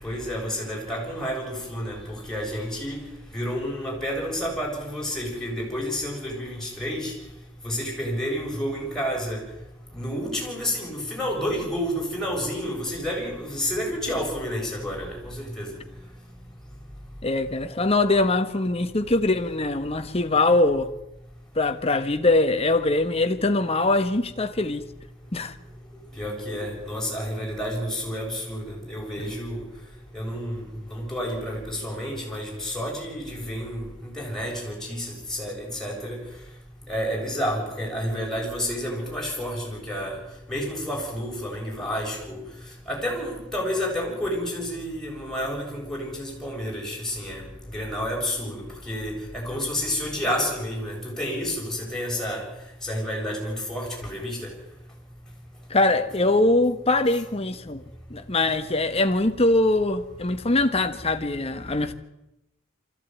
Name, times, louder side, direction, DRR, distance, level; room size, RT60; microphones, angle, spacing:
voice 1, 0.0-3.0 3.3-7.1 7.6-9.4 9.9-15.8 26.2-29.6 30.1-36.2 36.9-40.2 40.5-42.4 42.9-52.5 52.8-54.5, equal, 5° left, 7.4 m, -30 dB
voice 2, 17.2-20.9 21.5-24.8 25.3-25.6 55.7-57.8 58.1-61.9, left 2 dB, 30° left, 1.4 m, -22 dB
24.0 x 15.0 x 9.3 m
head